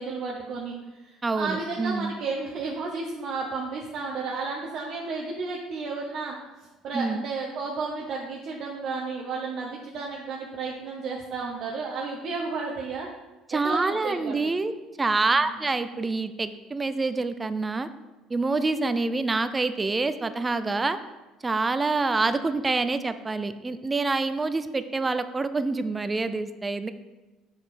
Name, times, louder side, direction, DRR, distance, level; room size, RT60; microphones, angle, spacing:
voice 1, 0.0-13.1 13.5-14.4 15.3-15.5, right 4 dB, 50° right, -2 dB, 0.8 m, -33 dB
voice 2, 1.2-2.1 6.9-7.2 13.5-14.7 15.0-17.9 18.3-21.0 21.4-26.9, right 3 dB, 15° right, 11 dB, 0.4 m, -26 dB
6.9 x 4.8 x 4.2 m, 1.1 s
cardioid pair, 135°, 0 cm